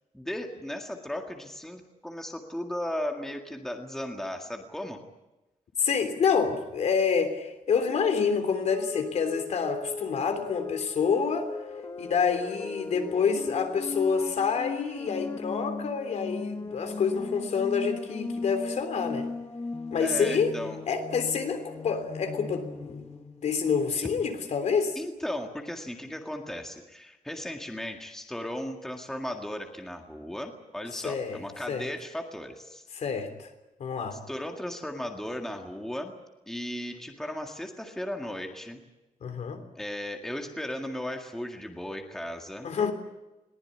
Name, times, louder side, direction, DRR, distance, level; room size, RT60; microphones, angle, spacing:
voice 1, 0.1-5.0 20.0-20.8 24.0-24.1 25.0-32.8 34.1-36.1 36.5-38.8 39.8-42.7, left 1 dB, 5° left, 3 dB, 1.9 m, -36 dB
voice 2, 5.8-11.5 12.0-19.3 19.9-20.5 20.9-23.1 23.4-25.0 31.0-31.4 31.7-31.8 32.9-33.5 33.8-34.2 39.2-39.6 42.6-42.9, left 6 dB, 55° left, 7 dB, 3.3 m, -27 dB
sound 1, 8.7-23.6, left 4 dB, 25° left, 1.2 m, -38 dB
21.5 x 19.5 x 9.8 m, 1.0 s
wide cardioid pair, 180°, 13 cm